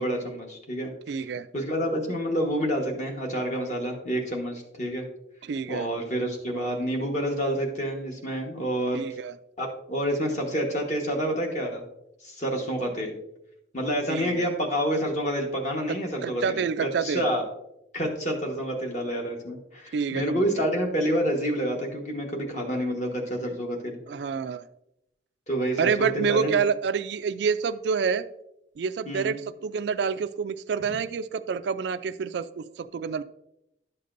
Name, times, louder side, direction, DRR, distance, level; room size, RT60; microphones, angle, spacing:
voice 1, 0.0-0.9 1.5-5.1 5.7-9.0 9.6-11.8 12.2-13.2 13.7-17.4 17.9-24.0 25.5-26.6 29.1-29.4, equal, 40° left, 1 dB, 1.2 m, -28 dB
voice 2, 1.1-1.5 5.4-5.9 8.9-9.3 14.1-14.5 16.2-17.3 19.9-20.7 24.1-24.7 25.8-28.2 28.8-29.4 29.6-33.2, right 6 dB, 65° right, 12 dB, 0.3 m, -28 dB
11.0 x 6.7 x 2.6 m, 0.83 s
head